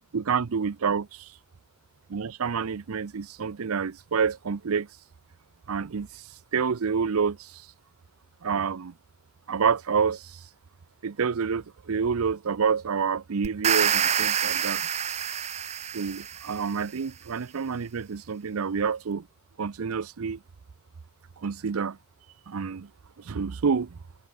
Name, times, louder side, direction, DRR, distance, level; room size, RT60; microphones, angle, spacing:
voice 1, 0.1-1.3 2.1-4.9 5.7-6.2 6.5-7.6 8.4-8.9 9.5-10.4 11.0-14.8 15.9-19.3 19.6-20.4 21.4-22.0 22.5-22.9 23.2-24.0, right 6 dB, 80° right, 0.6 m, -28 dB
sound 1, 13.4-16.6, right 8 dB, 30° right, 0.6 m, -27 dB
head